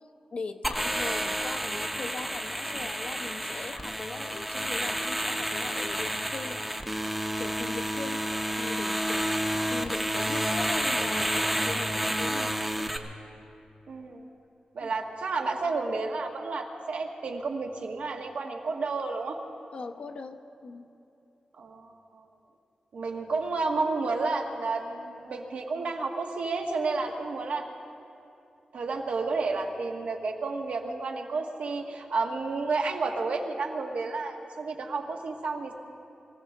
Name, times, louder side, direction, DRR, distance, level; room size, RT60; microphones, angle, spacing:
voice 1, 0.3-6.6 7.4-8.2 8.6-9.3 9.7-12.9 14.8-14.9 19.7-20.9, left 4 dB, 55° left, 7 dB, 0.8 m, -40 dB
sound 1, 0.6-13.0, equal, 5° right, 0.8 m, -30 dB
voice 2, 13.9-14.2 14.7-19.4 21.6-22.2 22.9-27.7 28.7-35.7, right 3 dB, 80° right, 2 dB, 1.4 m, -31 dB
24.0 x 16.0 x 3.7 m, 2.8 s
wide cardioid pair, 170°, 2 cm